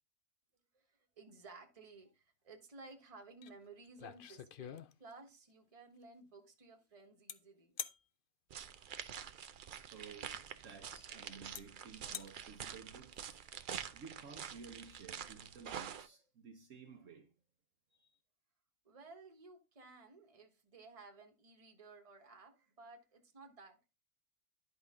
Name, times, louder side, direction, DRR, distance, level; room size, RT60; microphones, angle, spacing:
voice 1, 0.7-7.8 18.8-23.9, right 3 dB, 25° right, 1.2 m, -56 dB
sound 1, 3.4-3.5 3.9-5.3 7.3-7.4 7.8-8.0 9.9-10.0 10.9-11.0 11.5-11.6 12.0-12.3, left 9 dB, 85° left, 0.4 m, -45 dB
sound 2, 8.5-16.1, right 8 dB, 90° right, 0.4 m, -47 dB
voice 2, 9.9-13.4 13.9-17.4 17.9-18.2, right 5 dB, 60° right, 1.2 m, -54 dB
11.0 x 5.2 x 3.6 m
omnidirectional pair, 1.6 m